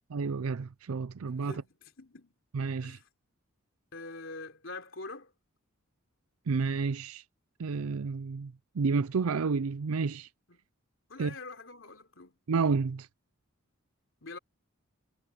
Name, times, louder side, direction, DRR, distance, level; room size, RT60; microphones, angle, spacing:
voice 1, 0.1-1.6 2.5-3.0 6.5-7.2 7.6-10.3 11.2-11.3 12.5-13.1, right 4 dB, 90° right, 0.5 m, -30 dB
voice 2, 1.3-2.3 2.8-3.1 3.9-5.3 10.5-10.6 11.1-12.4 14.2-14.4, left 3 dB, 65° left, 3.7 m, -45 dB
head